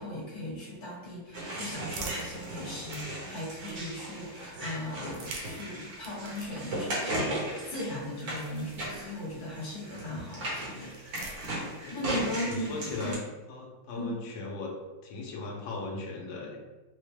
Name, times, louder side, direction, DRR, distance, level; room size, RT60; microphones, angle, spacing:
voice 1, 0.0-10.9 11.9-13.1 13.9-14.2, left 1 dB, 55° left, -6 dB, 1.7 m, -38 dB
sound 1, 1.2-4.1 4.9-9.5 10.5-12.0, right 4 dB, 80° right, 1.3 m, -48 dB
sound 2, 1.3-13.1, right 1 dB, 55° right, 1.4 m, -37 dB
voice 2, 12.3-13.2 13.5-16.6, left 3 dB, 90° left, -1 dB, 1.5 m, -38 dB
4.2 x 2.2 x 3.1 m, 1.1 s
omnidirectional pair, 2.1 m